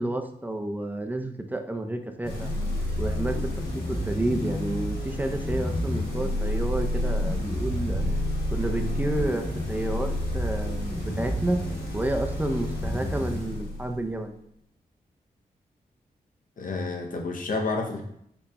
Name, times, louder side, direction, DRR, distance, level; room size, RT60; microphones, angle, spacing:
voice 1, 0.0-2.5 3.0-8.0 8.5-11.6 11.9-14.3, right 1 dB, 10° right, 5 dB, 0.5 m, -30 dB
sound 1, 2.2-14.2, left 1 dB, 75° left, 1.4 m, -29 dB
voice 2, 16.6-18.0, left 3 dB, 55° left, 2 dB, 0.7 m, -29 dB
4.0 x 3.4 x 2.2 m, 0.73 s
cardioid pair, 45°, 17 cm